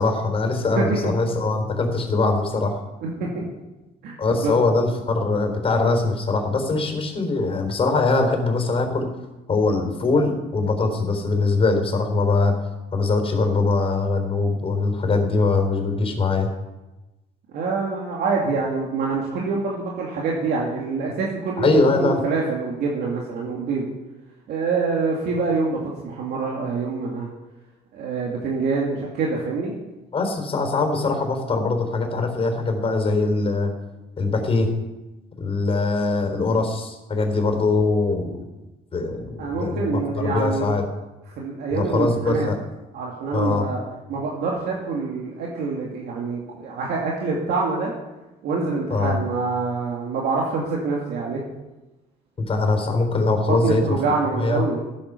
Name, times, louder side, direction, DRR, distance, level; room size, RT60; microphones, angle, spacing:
voice 1, 0.0-2.8 4.2-9.1 9.5-12.6 12.9-16.5 21.6-22.2 30.1-33.7 34.2-34.7 35.4-38.4 38.9-40.8 41.7-42.6 43.3-43.6 48.9-49.2 52.4-54.0 54.4-54.6, left 3 dB, 35° left, 4 dB, 4.0 m, -22 dB
voice 2, 0.8-1.1 3.0-3.5 4.0-4.1 4.4-4.5 17.5-23.9 24.5-27.3 27.9-29.8 39.4-40.7 41.4-42.5 42.9-43.8 44.1-47.9 48.4-51.4 53.5-54.8, right 4 dB, 75° right, -3 dB, 2.6 m, -25 dB
14.5 x 8.8 x 6.9 m, 1.1 s
cardioid pair, 110°, 17 cm